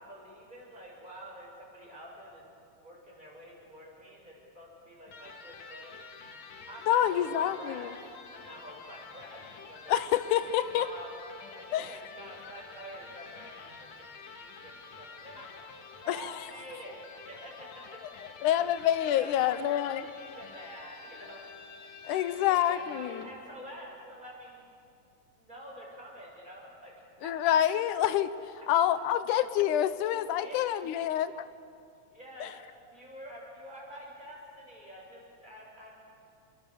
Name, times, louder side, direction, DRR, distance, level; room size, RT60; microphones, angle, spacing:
voice 1, 0.0-2.4 2.8-5.9 6.7-7.9 8.3-9.9 10.3-10.4 10.6-11.1 11.5-15.7 16.0-17.0 17.3-18.0 18.5-18.7 19.1-21.8 22.1-24.7 25.4-26.9 27.2-27.5 30.4-30.7 31.1-31.2 32.1-32.5 32.9-36.0, equal, 15° right, -3 dB, 6.9 m, -48 dB
Electric guitar, 5.1-23.4, left 5 dB, 65° left, 2.6 m, -48 dB
voice 2, 6.9-7.9 9.9-10.9 11.7-11.9 16.1-16.3 18.4-20.0 22.0-23.3 27.2-28.3 28.7-31.5 32.4-32.5, left 11 dB, 90° left, 13 dB, 2.3 m, -27 dB
28.5 x 22.5 x 6.9 m, 2.5 s
omnidirectional pair, 3.5 m